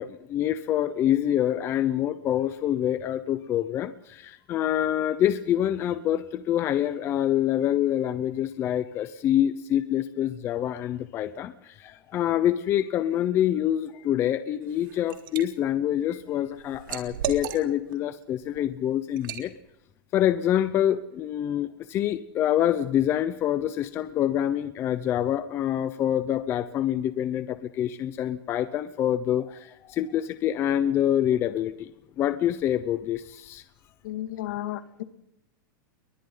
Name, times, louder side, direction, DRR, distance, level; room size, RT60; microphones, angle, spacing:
voice 1, 0.0-19.5 20.1-31.9 32.2-33.6, left 11 dB, 20° left, 12 dB, 0.7 m, -26 dB
Liquid, 14.6-15.4 15.9-18.0 18.4-18.6 19.2-19.5, right 9 dB, 70° right, 3.3 m, -35 dB
voice 2, 34.0-35.0, left 14 dB, 60° left, 9 dB, 2.3 m, -33 dB
29.5 x 22.5 x 3.9 m, 0.82 s
supercardioid pair, 170°, 11 cm